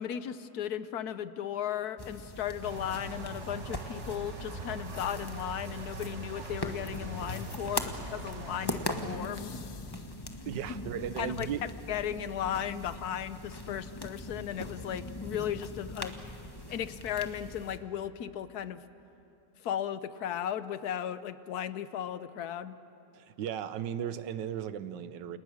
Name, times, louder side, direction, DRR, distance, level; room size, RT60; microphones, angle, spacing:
voice 1, 0.0-9.6 11.2-11.5 11.9-16.1 16.7-18.8 19.6-22.8, left 10 dB, 65° left, 13 dB, 1.3 m, -36 dB
sound 1, 2.0-17.8, left 2 dB, 15° left, 1.1 m, -41 dB
sound 2, 2.6-9.2, right 3 dB, 45° right, 1.5 m, -43 dB
sound 3, 9.0-10.8 13.0-13.1, left 7 dB, 45° left, 0.9 m, -55 dB
voice 2, 10.5-11.6 23.1-25.4, right 9 dB, 85° right, 13 dB, 1.5 m, -36 dB
29.5 x 28.0 x 6.5 m, 2.9 s
omnidirectional pair, 1.9 m